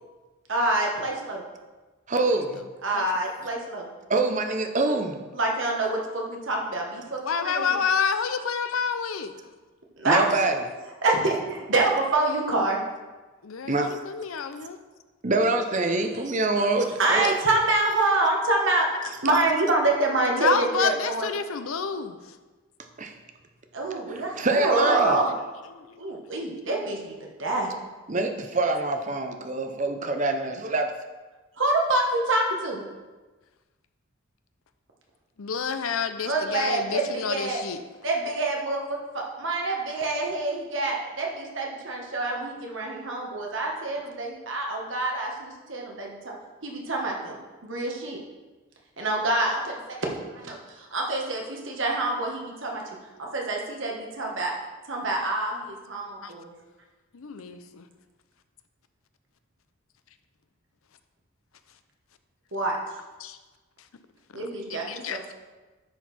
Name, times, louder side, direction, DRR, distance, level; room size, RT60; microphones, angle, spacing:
voice 1, 0.5-1.4 2.8-3.9 5.3-7.8 10.0-10.3 11.0-12.8 17.0-18.9 19.2-21.3 23.7-25.3 26.0-27.1 27.4-27.7 31.6-32.8 36.2-37.6 38.0-38.8 39.1-46.4 46.6-48.2 49.0-50.0 50.4-52.8 53.2-54.5 54.9-56.5 62.5-62.8 64.3-65.3, right 2 dB, 65° right, 0 dB, 1.4 m, -26 dB
voice 2, 2.1-2.6 4.1-5.2 10.1-10.6 13.7-13.9 15.2-17.3 23.0-23.1 24.1-25.2 28.1-30.9, right 2 dB, 35° right, 6 dB, 0.6 m, -25 dB
voice 3, 7.2-9.3 13.4-14.8 19.0-19.1 20.4-22.2 25.7-26.1 35.4-37.8 56.2-56.3 57.1-57.9 63.2-63.4 64.3-65.3, left 6 dB, 80° left, 10 dB, 0.6 m, -29 dB
10.5 x 4.6 x 4.2 m, 1.3 s
head